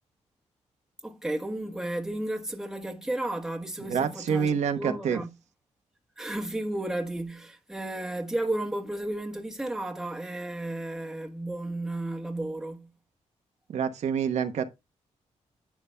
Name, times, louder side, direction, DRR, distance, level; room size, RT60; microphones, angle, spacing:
voice 1, 1.0-5.3 6.2-12.9, right 1 dB, 5° right, 1.2 m, -33 dB
voice 2, 3.9-5.2 13.7-14.6, right 7 dB, 70° right, 1.1 m, -27 dB
10.5 x 8.2 x 2.2 m
cardioid pair, 125°, 12 cm